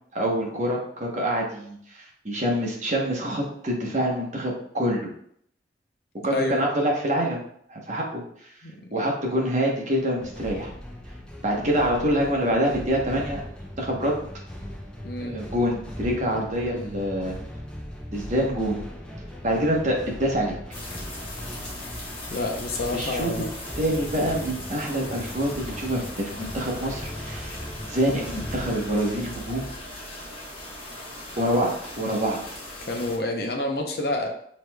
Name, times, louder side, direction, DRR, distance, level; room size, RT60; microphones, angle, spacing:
voice 1, 0.1-5.1 6.2-7.4 7.7-8.5 8.9-10.7 11.4-13.4 13.8-14.2 15.2-17.4 18.1-18.8 19.4-20.6 22.9-23.4 23.8-27.6 27.9-29.7 31.4-31.7 32.0-32.4, equal, 40° right, -1 dB, 0.9 m, -26 dB
sound 1, 10.2-29.0, equal, 5° left, 0.5 m, -39 dB
sound 2, 20.7-33.2, left 1 dB, 30° left, 1.1 m, -39 dB
voice 2, 22.3-23.5 32.8-34.3, left 2 dB, 55° left, 2 dB, 0.6 m, -28 dB
6.6 x 3.0 x 2.2 m, 0.67 s
head